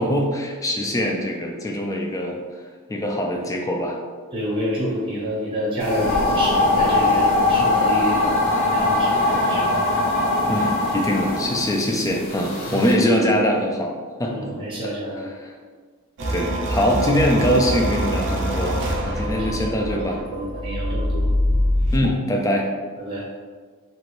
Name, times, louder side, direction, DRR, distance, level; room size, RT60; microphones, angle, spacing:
voice 1, 0.0-2.4 2.9-4.0 10.5-13.9 14.2-14.5 15.2-15.5 16.3-18.8 19.1-20.2 21.9-22.7, equal, 15° left, 0 dB, 0.3 m, -22 dB
voice 2, 4.3-9.6 12.7-12.8 14.3-15.2 19.2-21.6 23.0-23.2, equal, 25° right, -5 dB, 0.8 m, -29 dB
sound 1, 5.8-12.9, left 2 dB, 60° left, 0.6 m, -21 dB
sound 2, 16.2-22.1, equal, 55° right, 0.5 m, -24 dB
2.9 x 2.5 x 3.0 m, 1.5 s
head